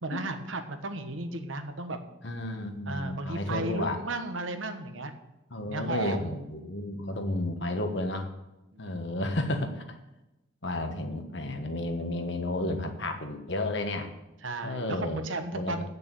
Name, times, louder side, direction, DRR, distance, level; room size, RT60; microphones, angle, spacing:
voice 1, 0.0-2.0 2.9-5.1 5.7-6.4 8.7-9.1 14.4-15.9, right 2 dB, 75° right, 7 dB, 1.3 m, -34 dB
voice 2, 2.2-4.0 5.5-8.3 8.8-9.8 10.6-14.1 14.6-15.2 15.5-15.8, left 1 dB, 60° left, 5 dB, 1.4 m, -32 dB
8.8 x 6.8 x 8.3 m, 0.96 s
head